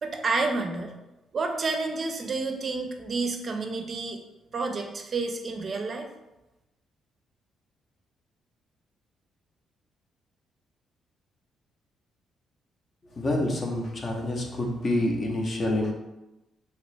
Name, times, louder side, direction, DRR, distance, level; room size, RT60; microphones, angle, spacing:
voice 1, 0.0-0.9 1.3-4.2 4.5-6.1, right 3 dB, 45° right, 4 dB, 0.4 m, -29 dB
voice 2, 13.2-15.9, left 1 dB, 40° left, 1 dB, 0.6 m, -27 dB
2.9 x 2.8 x 3.3 m, 0.99 s
cardioid pair, 90°, 0 cm